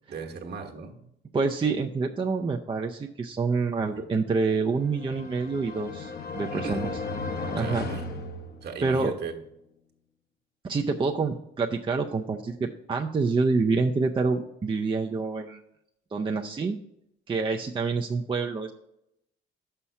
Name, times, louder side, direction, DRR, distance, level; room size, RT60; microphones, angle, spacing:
voice 1, 0.1-1.0 6.5-6.9 7.4-8.2 8.6-9.3, right 4 dB, 55° right, 1.3 m, -37 dB
voice 2, 1.3-6.9 7.5-7.9 8.8-9.1 10.6-15.6 16.1-16.8 17.3-18.7, right 4 dB, 25° right, 0.5 m, -27 dB
sound 1, 4.6-9.1, left 3 dB, 55° left, 1.0 m, -35 dB
6.1 x 5.6 x 5.7 m
cardioid pair, 90°, 20 cm